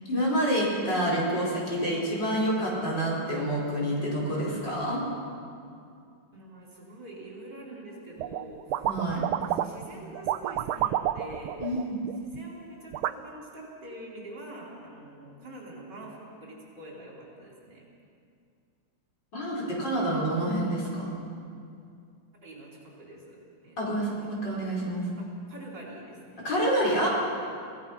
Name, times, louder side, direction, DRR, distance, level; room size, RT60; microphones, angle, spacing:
voice 1, 0.1-5.0 8.9-9.2 11.6-12.0 19.3-21.1 23.8-25.1 26.4-27.1, right 1 dB, 55° left, -4 dB, 5.3 m, -28 dB
voice 2, 6.3-8.9 9.3-11.6 12.2-17.8 22.4-23.4 23.6-24.3 25.2-26.5, right 1 dB, 55° right, -4 dB, 5.5 m, -45 dB
sound 1, 8.2-8.5 8.7-9.8 10.1-12.4 12.9-13.1, right 12 dB, 80° right, 1.5 m, -29 dB
26.5 x 17.0 x 5.9 m, 2.4 s
omnidirectional pair, 2.3 m